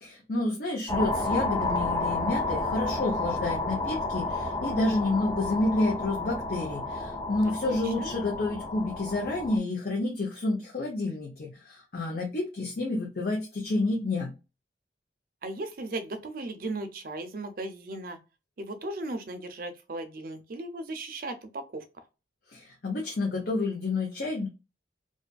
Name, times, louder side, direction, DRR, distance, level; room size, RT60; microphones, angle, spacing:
voice 1, 0.0-14.3 22.5-24.5, left 2 dB, 55° left, 0.7 m, -29 dB
sound 1, 0.9-9.6, left 2 dB, 20° left, 0.4 m, -31 dB
voice 2, 7.6-8.1 15.4-18.2 18.6-21.8, right 2 dB, 50° right, 0.5 m, -37 dB
2.6 x 2.4 x 2.3 m
head